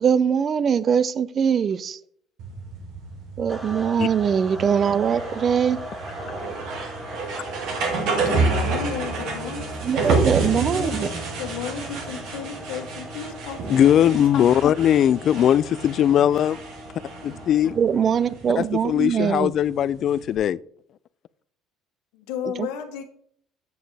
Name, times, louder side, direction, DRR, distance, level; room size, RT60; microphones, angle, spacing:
voice 1, 0.0-2.0 3.4-5.8 9.8-11.1 17.8-19.5 22.4-22.7, right 7 dB, 45° right, 0.5 m, -22 dB
sound 1, 2.4-20.3, right 4 dB, 75° right, 2.2 m, -30 dB
sound 2, 3.5-18.2, equal, 15° right, 2.3 m, -40 dB
voice 2, 8.2-10.2 10.5-14.4 22.1-23.0, left 7 dB, 80° left, 1.3 m, -34 dB
voice 3, 13.7-16.6 17.2-17.8 18.6-20.6, left 10 dB, 55° left, 0.3 m, -19 dB
7.8 x 7.3 x 3.3 m
supercardioid pair, 85°, 0 cm